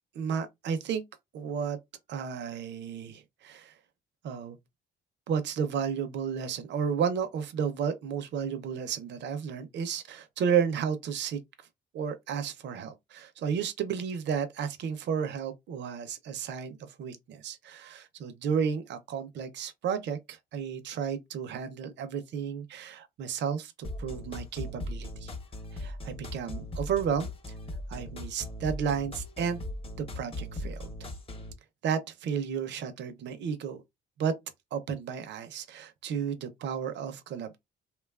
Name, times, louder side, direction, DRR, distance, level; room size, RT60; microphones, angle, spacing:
voice 1, 0.1-1.0 1.3-1.8 2.1-3.7 4.2-4.6 5.3-11.4 11.9-25.3 25.7-27.3 27.9-29.6 30.0-31.1 31.8-33.8 34.2-34.3 34.7-37.6, right 7 dB, 65° right, 0.5 m, -32 dB
sound 1, 23.8-31.5, left 1 dB, 30° left, 0.7 m, -39 dB
2.8 x 2.3 x 2.3 m
cardioid pair, 90°, 20 cm